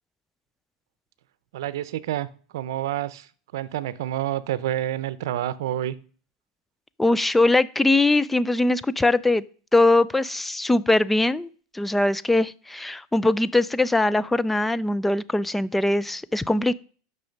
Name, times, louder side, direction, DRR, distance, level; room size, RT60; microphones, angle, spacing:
voice 1, 1.5-2.3 2.5-6.0, right 12 dB, 80° right, 0.7 m, -28 dB
voice 2, 7.0-9.4 9.7-16.7, left 2 dB, 5° left, 0.4 m, -21 dB
9.0 x 6.1 x 5.2 m
supercardioid pair, 130°, 2 cm